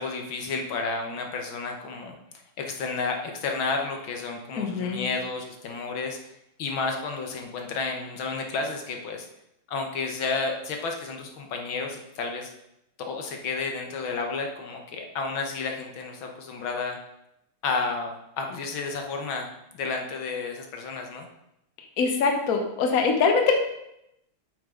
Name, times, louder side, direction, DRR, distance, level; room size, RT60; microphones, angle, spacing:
voice 1, 0.0-2.2 2.6-6.2 6.6-9.3 9.7-12.5 13.1-17.0 17.6-19.5 19.7-21.3, left 4 dB, 70° left, 3 dB, 1.8 m, -31 dB
voice 2, 4.6-5.0 22.0-23.5, left 5 dB, 50° left, 4 dB, 1.3 m, -23 dB
8.8 x 7.2 x 3.8 m, 0.82 s
omnidirectional pair, 2.3 m